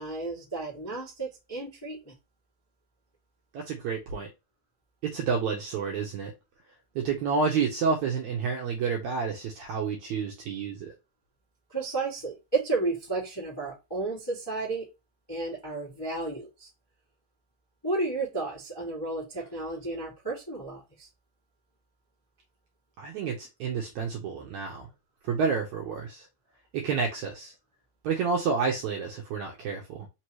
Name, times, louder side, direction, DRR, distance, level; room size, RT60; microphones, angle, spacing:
voice 1, 0.0-2.1 11.7-14.8 15.3-16.7 17.8-21.1, right 3 dB, 15° left, 0.8 m, -32 dB
voice 2, 3.5-4.3 5.0-6.3 7.0-10.9 23.0-24.9 25.2-26.3 26.7-27.5 28.0-30.1, right 5 dB, 75° right, 1.7 m, -29 dB
5.3 x 2.9 x 3.0 m
omnidirectional pair, 4.2 m